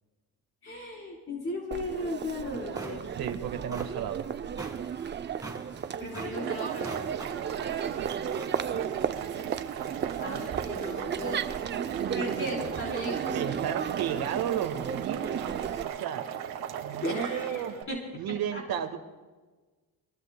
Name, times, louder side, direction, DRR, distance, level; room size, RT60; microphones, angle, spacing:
voice 1, 0.6-3.0 6.0-7.0 10.2-13.6 17.0-18.0 18.5-18.6, left 1 dB, 35° left, -3 dB, 3.9 m, -36 dB
Crowd, 1.7-15.8, right 8 dB, 30° right, 0.5 m, -34 dB
sound 1, 2.7-11.7, right 2 dB, 10° right, 2.1 m, -47 dB
voice 2, 3.1-4.3 7.9-8.1 13.3-16.2 16.8-17.8 18.1-19.0, right 9 dB, 70° right, 7 dB, 1.6 m, -33 dB
Boiling, 6.3-17.8, right 9 dB, 90° right, 2.1 m, -38 dB
26.0 x 22.5 x 2.2 m, 1.3 s
cardioid pair, 125°, 37 cm